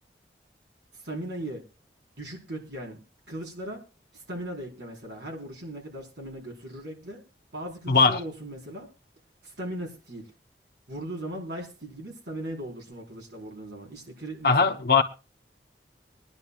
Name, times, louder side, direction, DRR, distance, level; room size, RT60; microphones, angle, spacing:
voice 1, 0.9-1.6 2.2-3.0 3.3-3.8 4.1-7.2 7.5-8.9 9.4-10.3 10.9-14.8, right 1 dB, 80° right, 4.5 m, -38 dB
voice 2, 7.9-8.2 14.4-15.0, left 4 dB, 55° left, 1.0 m, -20 dB
23.5 x 10.5 x 2.5 m
head